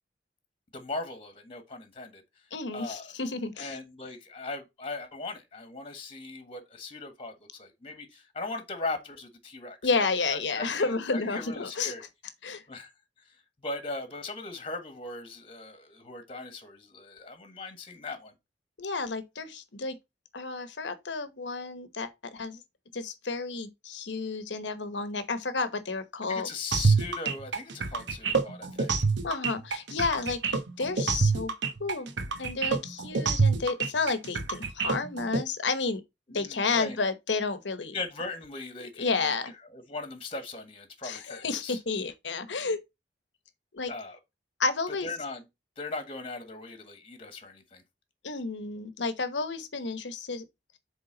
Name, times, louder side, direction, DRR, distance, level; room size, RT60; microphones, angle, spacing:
voice 1, 0.7-2.2 2.7-3.1 3.6-10.0 10.3-12.0 12.7-12.9 13.2-18.3 26.3-28.9 36.3-37.0 37.9-39.3 39.7-41.8 43.9-44.2 44.9-45.4 45.8-47.8, left 3 dB, 30° left, 1.4 m, -39 dB
voice 2, 2.5-3.8 9.8-11.9 12.4-12.6 18.8-20.0 20.3-22.6 22.9-26.5 29.2-31.5 31.8-32.1 32.4-36.0 36.3-37.9 39.0-39.5 41.0-42.8 43.7-43.9 44.6-45.1 48.2-50.4, left 4 dB, 85° left, 1.0 m, -31 dB
sound 1, 26.7-35.4, right 4 dB, 85° right, 1.0 m, -27 dB
8.0 x 3.7 x 3.8 m
head